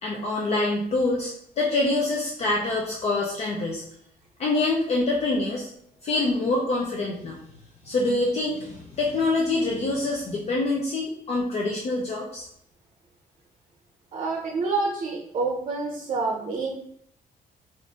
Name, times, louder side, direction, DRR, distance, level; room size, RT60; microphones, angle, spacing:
voice 1, 0.0-3.8 4.4-5.7 6.0-7.4 7.8-12.5, left 2 dB, 40° left, -2 dB, 0.5 m, -25 dB
voice 2, 14.1-16.7, right 3 dB, 40° right, 0 dB, 0.6 m, -27 dB
4.0 x 2.5 x 3.5 m, 0.68 s
cardioid pair, 180°, 16 cm